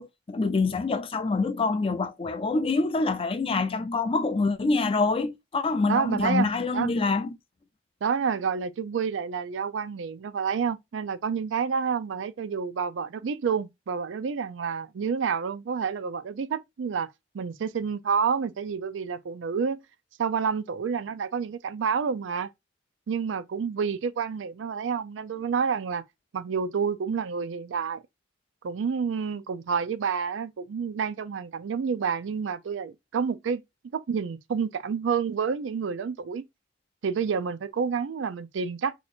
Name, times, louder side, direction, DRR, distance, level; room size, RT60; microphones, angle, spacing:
voice 1, 0.0-7.4, left 3 dB, 30° left, 0.4 m, -26 dB
voice 2, 5.9-6.5 6.7-6.9 8.0-17.1 17.3-19.8 20.2-22.5 23.1-26.0 26.3-28.0 28.6-33.6 33.9-36.4 37.0-38.9, right 6 dB, 85° right, 0.4 m, -29 dB
2.8 x 2.4 x 4.2 m
head